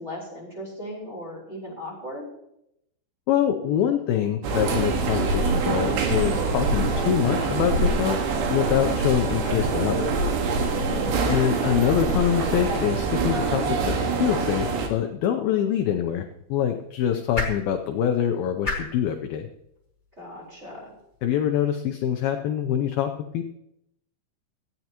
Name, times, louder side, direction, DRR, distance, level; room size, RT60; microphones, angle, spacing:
voice 1, 0.0-2.3 10.7-11.2 20.2-20.9, equal, 15° right, -4 dB, 4.3 m, -37 dB
voice 2, 3.3-8.2 8.5-10.2 11.3-13.9 14.2-19.5 21.2-23.5, left 9 dB, 75° left, 5 dB, 2.3 m, -25 dB
sound 1, 4.4-14.9, right 4 dB, 85° right, 3.8 m, -25 dB
sound 2, 15.5-21.8, left 2 dB, 15° left, 1.9 m, -38 dB
17.5 x 13.5 x 3.0 m, 0.80 s
omnidirectional pair, 4.8 m